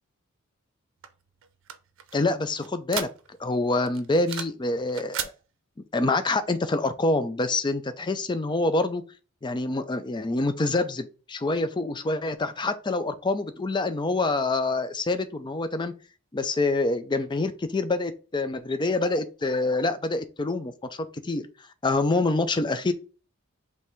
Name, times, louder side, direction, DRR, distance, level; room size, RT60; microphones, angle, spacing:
sound 1, 1.0-3.5 3.9-4.6 4.9-5.4, right 9 dB, 60° right, 0.6 m, -35 dB
voice 1, 2.1-5.3 5.9-9.0 9.4-15.9 16.3-21.5 21.8-22.9, left 2 dB, 20° left, 0.4 m, -26 dB
5.3 x 3.3 x 3.0 m
head